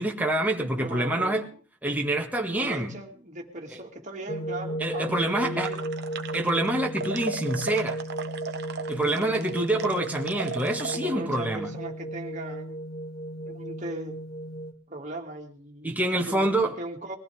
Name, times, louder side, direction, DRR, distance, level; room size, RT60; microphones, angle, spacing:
voice 1, 0.0-1.4 1.8-2.9 4.8-5.7 6.3-8.0 8.9-11.7 15.8-16.7, right 1 dB, 5° right, 1 dB, 1.8 m, -26 dB
voice 2, 0.8-1.5 2.6-5.9 8.9-9.8 10.9-12.8 13.4-14.2 14.9-17.2, right 1 dB, 35° right, 1 dB, 2.3 m, -39 dB
sound 1, 4.3-14.7, right 1 dB, 45° left, 2.2 m, -35 dB
sound 2, 5.6-6.7 7.0-11.0, right 5 dB, 50° right, 1.2 m, -36 dB
22.0 x 15.0 x 3.5 m, 0.39 s
head